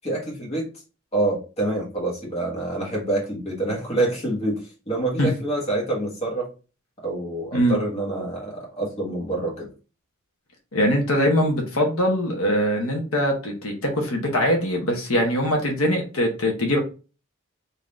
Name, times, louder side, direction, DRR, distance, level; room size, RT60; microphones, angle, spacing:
voice 1, 0.0-0.7 1.1-6.5 7.0-9.7, right 2 dB, 30° left, -2 dB, 1.4 m, -26 dB
voice 2, 10.7-16.8, equal, 85° left, 2 dB, 1.0 m, -22 dB
3.7 x 2.8 x 3.1 m, 0.33 s
head